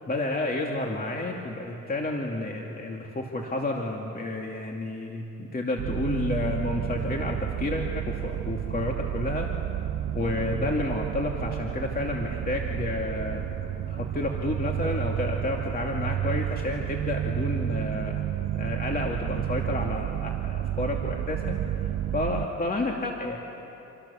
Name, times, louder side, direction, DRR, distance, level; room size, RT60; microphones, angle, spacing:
voice 1, 0.1-9.5 10.1-13.4 13.9-18.2 18.5-23.4, left 2 dB, 30° left, 0 dB, 2.6 m, -30 dB
sound 1, 5.8-22.5, right 11 dB, 85° right, 1.0 m, -31 dB
29.5 x 28.0 x 7.2 m, 3.0 s
cardioid pair, 90°, 30 cm